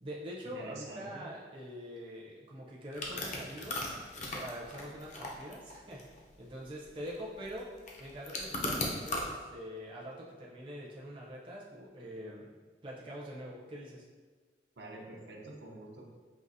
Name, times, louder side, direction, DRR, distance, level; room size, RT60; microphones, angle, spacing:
voice 1, 0.0-7.6 8.0-12.5 12.8-14.0, equal, 30° right, -5 dB, 0.6 m, -44 dB
voice 2, 0.5-1.2 14.8-16.1, right 2 dB, 75° right, -2 dB, 0.7 m, -46 dB
sound 1, 2.9-9.3, left 1 dB, 40° left, 0.6 m, -38 dB
5.4 x 2.9 x 2.6 m, 1.4 s
head